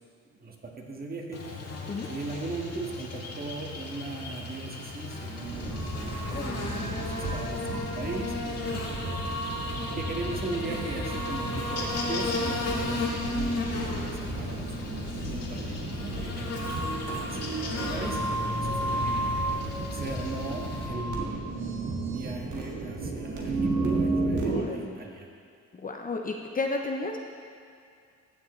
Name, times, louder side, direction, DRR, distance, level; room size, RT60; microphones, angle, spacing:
voice 1, 0.3-1.4 2.1-8.3 10.0-19.2 19.9-21.5 22.1-25.3, right 3 dB, 30° right, 0 dB, 1.5 m, -38 dB
Buzz, 1.3-20.9, left 3 dB, 55° left, 1.8 m, -35 dB
sound 1, 5.4-24.6, right 2 dB, 80° right, 1.8 m, -32 dB
voice 2, 24.5-24.9 25.7-27.2, left 3 dB, 30° left, 2 dB, 0.6 m, -33 dB
15.0 x 7.3 x 3.1 m, 2.3 s
cardioid pair, 90°, 30 cm